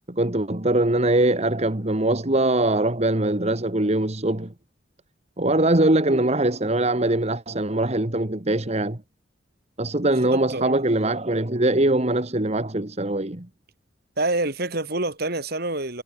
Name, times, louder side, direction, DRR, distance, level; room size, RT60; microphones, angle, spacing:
voice 1, 0.1-4.5 5.4-9.0 9.8-13.5, right 1 dB, 35° right, 1.7 m, -22 dB
voice 2, 10.3-10.8 14.2-16.0, right 2 dB, 55° right, 5.2 m, -27 dB
head